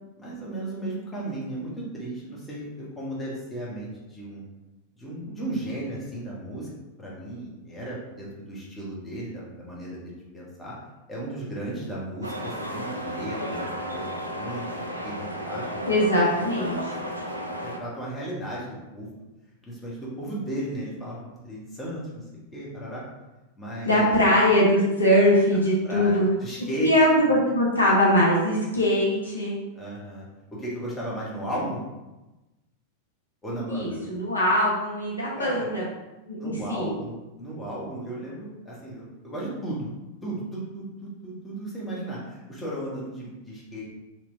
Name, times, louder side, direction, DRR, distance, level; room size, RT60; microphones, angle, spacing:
voice 1, 0.2-4.4 5.0-6.7 7.0-10.7 11.1-13.7 13.9-14.6 15.0-15.9 17.6-19.1 19.6-22.2 22.5-23.0 23.6-24.2 25.8-26.9 29.7-30.3 30.6-31.8 33.4-34.0 35.3-35.7 36.3-39.9 40.2-43.8, right 1 dB, 15° left, -6 dB, 1.1 m, -35 dB
sound 1, 12.2-17.8, equal, 85° right, 0.4 m, -33 dB
voice 2, 15.9-16.9 23.9-26.2 26.8-29.6 33.7-35.8 36.3-36.9, equal, 80° left, -5 dB, 0.9 m, -21 dB
3.0 x 3.0 x 2.6 m, 1.1 s
figure-of-eight pair, 90°, 0 cm